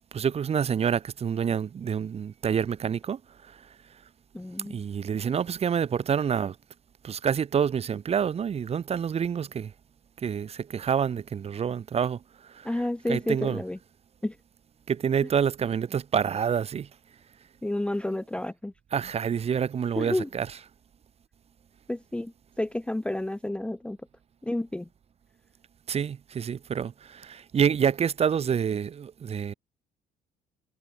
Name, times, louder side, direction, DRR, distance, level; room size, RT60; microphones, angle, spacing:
voice 1, 0.1-3.7 4.6-6.6 7.0-9.7 10.2-12.7 13.1-13.6 14.9-16.9 18.9-20.5 25.9-29.5, right 7 dB, 35° right, 1.0 m, -27 dB
voice 2, 4.3-4.8 12.6-13.8 14.2-14.4 17.6-18.7 20.0-20.3 21.9-24.0 24.4-24.9, left 1 dB, 5° left, 0.7 m, -30 dB
cardioid pair, 110°, 17 cm